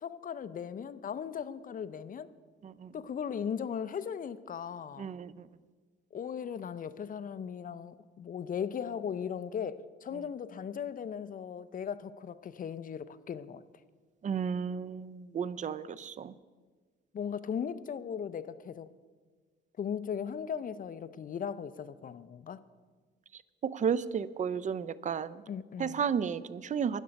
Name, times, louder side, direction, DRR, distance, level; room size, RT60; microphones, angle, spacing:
voice 1, 0.0-2.3 2.9-5.1 6.1-13.6 17.1-18.9 19.8-22.6 25.5-26.0, left 7 dB, 45° left, 15 dB, 0.6 m, -38 dB
voice 2, 5.0-5.5 14.2-16.3 23.6-25.4 25.8-27.0, right 7 dB, 40° right, 17 dB, 0.5 m, -33 dB
12.5 x 9.9 x 5.3 m, 1.4 s
cardioid pair, 90°, 20 cm